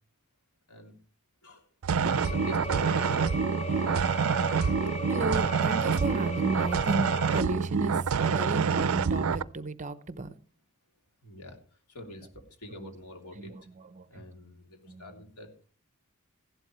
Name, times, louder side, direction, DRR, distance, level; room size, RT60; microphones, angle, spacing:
sound 1, 1.8-9.4, right 6 dB, 65° right, 0.5 m, -27 dB
voice 1, 1.9-3.3 11.2-11.6 11.9-13.6 14.1-15.5, left 1 dB, 85° left, 3 dB, 3.2 m, -45 dB
sound 2, 2.0-7.4, equal, 30° left, 0.8 m, -37 dB
voice 2, 5.1-10.3 12.8-12.9 13.4-13.6 13.9-14.0 14.9-15.1, right 2 dB, 35° right, 13 dB, 0.8 m, -34 dB
15.5 x 11.5 x 3.2 m, 0.39 s
head